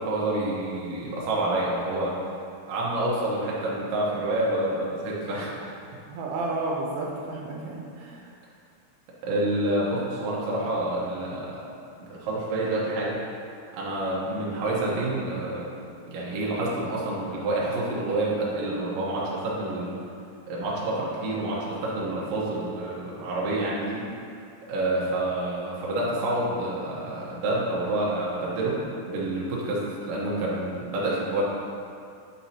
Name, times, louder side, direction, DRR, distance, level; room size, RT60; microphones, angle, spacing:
voice 1, 0.0-2.1 2.7-5.7 9.2-11.6 12.0-13.2 13.7-15.7 16.1-20.0 20.5-24.1 24.7-31.4, right 1 dB, 70° right, -5 dB, 2.4 m, -28 dB
voice 2, 6.1-8.3, right 2 dB, 85° right, -2 dB, 2.8 m, -32 dB
7.5 x 5.3 x 2.8 m, 2.4 s
omnidirectional pair, 4.6 m